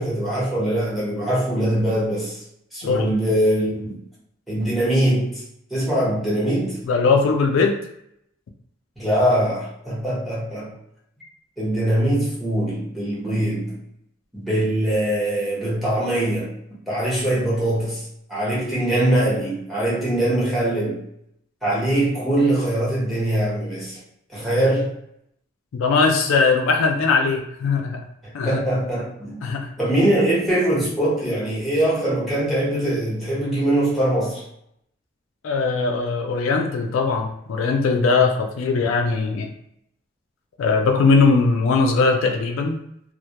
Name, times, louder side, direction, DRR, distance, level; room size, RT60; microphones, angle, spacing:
voice 1, 0.0-2.4 2.7-3.9 4.5-5.4 5.7-6.8 9.0-10.7 11.6-13.7 14.3-16.5 16.9-18.0 18.3-21.0 21.6-24.0 24.3-24.9 28.4-29.4 29.8-34.4, right 1 dB, ahead, -7 dB, 0.9 m, -22 dB
voice 2, 6.9-7.8 25.7-28.0 28.3-28.6 29.4-29.7 35.4-39.5 40.6-42.8, left 4 dB, 80° left, 3 dB, 0.3 m, -20 dB
2.2 x 2.1 x 2.8 m, 0.75 s
head